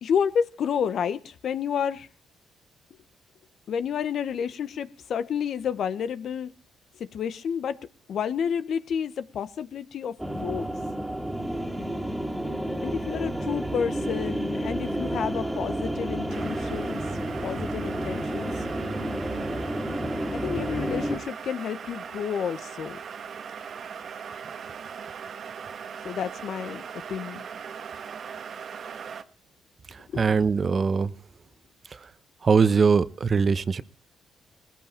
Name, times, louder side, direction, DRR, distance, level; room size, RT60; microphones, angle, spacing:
voice 1, 0.0-2.1 3.7-6.5 6.9-7.8 8.1-10.7 12.8-17.0 17.4-18.6 20.3-23.0 26.0-26.8 27.1-27.5 30.1-30.2, left 7 dB, 65° left, 1.0 m, -30 dB
sound 1, 10.2-21.2, right 1 dB, 5° right, 2.3 m, -30 dB
sound 2, 16.3-29.2, right 7 dB, 55° right, 1.4 m, -39 dB
voice 2, 29.9-31.1 32.4-33.8, right 5 dB, 40° right, 0.9 m, -22 dB
19.5 x 15.5 x 4.4 m
cardioid pair, 90°, 0 cm